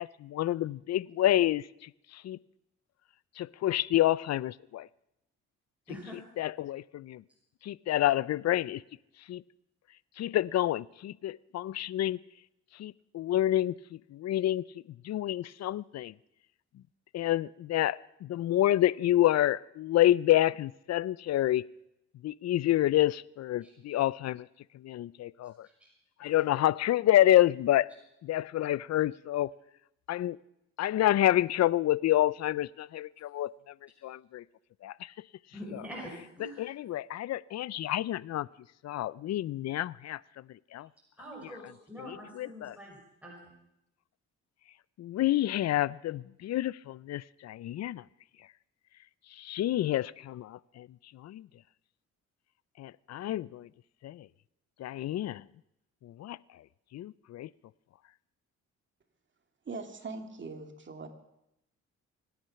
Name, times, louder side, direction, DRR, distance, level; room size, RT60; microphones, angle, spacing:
voice 1, 0.0-2.4 3.4-4.9 6.4-7.2 7.6-8.8 9.3-9.4 10.2-12.2 12.8-14.6 15.0-16.1 17.1-21.6 22.2-24.5 24.7-25.7 26.2-27.9 28.2-29.5 30.1-30.4 30.8-33.5 34.0-34.4 34.8-35.1 36.6-38.5 38.8-40.2 40.5-40.9 42.1-42.8 45.0-48.0 49.3-50.9 51.1-51.5 52.8-53.7 54.0-54.3 54.8-55.4 56.0-56.4 56.9-57.5, left 13 dB, 60° left, 21 dB, 0.6 m, -28 dB
voice 2, 5.9-6.2 23.6-23.7 25.6-25.9 26.2-26.4 35.5-36.6 41.2-43.6, equal, 5° right, -2 dB, 6.1 m, -45 dB
voice 3, 59.6-61.1, right 4 dB, 40° right, 5 dB, 2.6 m, -41 dB
25.0 x 9.6 x 5.8 m, 0.83 s
cardioid pair, 90°, 30 cm